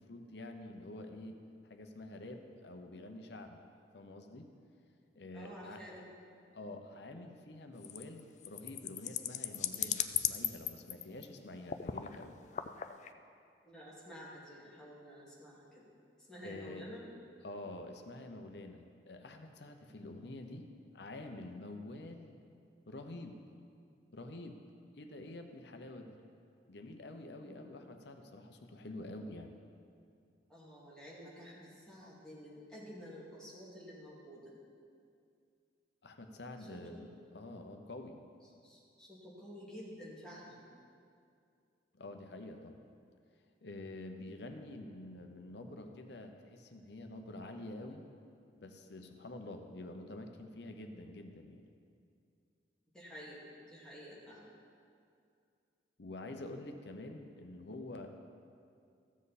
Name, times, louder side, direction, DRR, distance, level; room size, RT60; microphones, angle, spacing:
voice 1, 0.0-1.4 1.6-3.6 3.9-4.5 5.1-6.0 6.5-12.4 16.4-16.9 17.4-20.7 20.9-22.4 22.9-23.4 24.1-24.6 25.0-26.2 26.7-29.6 36.0-37.1 37.3-38.2 41.9-42.9 43.6-48.0 48.6-51.6 56.0-58.1, left 2 dB, 65° left, 5 dB, 0.8 m, -47 dB
voice 2, 5.3-6.4 13.6-15.9 16.3-17.1 27.4-27.7 30.5-34.5 36.6-37.0 38.6-40.7 52.9-54.5, equal, 5° left, -7 dB, 2.3 m, -51 dB
sound 1, 7.8-11.3 11.7-12.2 12.5-13.1, left 10 dB, 40° left, 0.4 m, -36 dB
14.5 x 7.4 x 4.2 m, 2.4 s
head